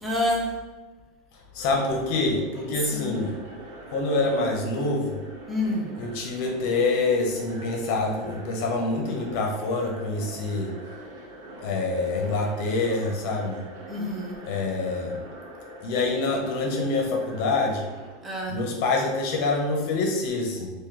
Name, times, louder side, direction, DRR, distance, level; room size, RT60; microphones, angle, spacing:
voice 1, 0.0-0.6 2.9-3.1 5.5-5.9 13.9-14.4 18.2-18.6, left 1 dB, 10° right, -3 dB, 0.7 m, -28 dB
voice 2, 1.5-3.3 3.9-5.2 6.0-10.7 11.6-13.6 14.5-15.2 15.8-17.9 18.5-20.7, left 3 dB, 55° left, 1 dB, 0.9 m, -26 dB
sound 1, 1.6-18.1, right 1 dB, 85° right, 1.0 m, -44 dB
3.2 x 2.7 x 3.9 m, 1.3 s
supercardioid pair, 150°, 0 cm